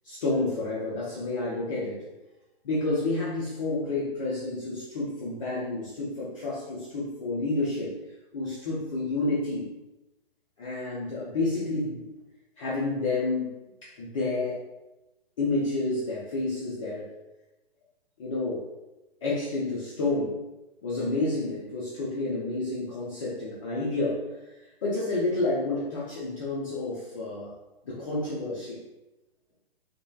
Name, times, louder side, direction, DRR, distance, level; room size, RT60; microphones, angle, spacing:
voice 1, 0.0-2.0 2.6-7.9 8.3-9.7 10.6-12.0 12.6-13.5 13.8-14.6 15.4-17.1 18.2-18.6 19.2-20.4 20.8-27.6 27.9-28.8, left 2 dB, 35° left, -7 dB, 0.5 m, -30 dB
2.9 x 2.1 x 2.3 m, 1.0 s
figure-of-eight pair, 120°, 30 cm